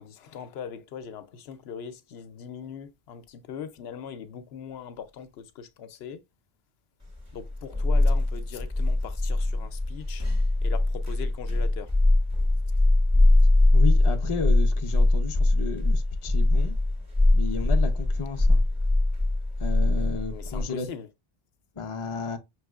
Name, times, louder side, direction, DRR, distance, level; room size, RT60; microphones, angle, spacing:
voice 1, 0.0-6.2 7.3-10.3 10.6-11.9 20.3-21.1, left 7 dB, 80° left, 0.8 m, -40 dB
sound 1, 7.2-20.6, left 2 dB, 15° right, 1.4 m, -22 dB
voice 2, 13.7-16.8 17.3-18.6 19.6-20.9 21.8-22.4, left 5 dB, 40° left, 0.5 m, -33 dB
5.4 x 3.0 x 2.3 m
omnidirectional pair, 1.0 m